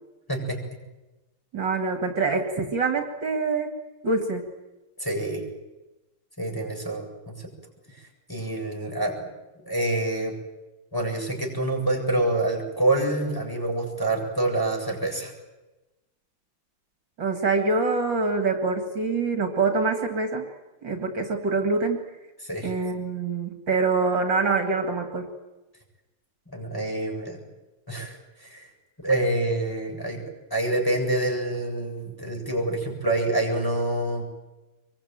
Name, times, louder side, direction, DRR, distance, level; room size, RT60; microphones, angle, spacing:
voice 1, 0.3-0.6 5.0-5.4 6.4-7.5 7.9-8.0 8.3-9.3 9.6-10.3 10.9-15.3 22.4-22.7 26.5-27.4 27.9-28.7 29.0-30.2 30.5-34.2, right 1 dB, 10° left, 1 dB, 7.7 m, -27 dB
voice 2, 1.5-3.7 4.0-4.4 17.2-20.4 20.8-22.0 22.6-25.3, right 4 dB, 60° right, 5 dB, 2.9 m, -25 dB
25.5 x 23.5 x 9.2 m, 1.1 s
omnidirectional pair, 2.4 m